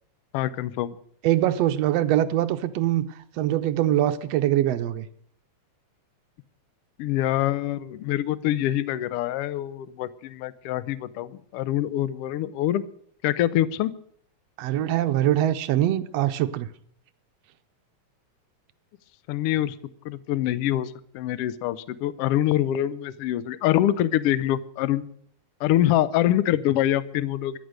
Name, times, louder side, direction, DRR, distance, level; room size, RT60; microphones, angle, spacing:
voice 1, 0.3-1.0 7.0-12.8 13.2-13.9 19.3-19.7 20.0-25.1 25.6-27.6, left 13 dB, 80° left, 1.3 m, -25 dB
voice 2, 1.2-3.1 3.4-5.1 14.6-16.7, right 12 dB, 75° right, 1.6 m, -23 dB
13.5 x 11.5 x 6.5 m
omnidirectional pair, 3.4 m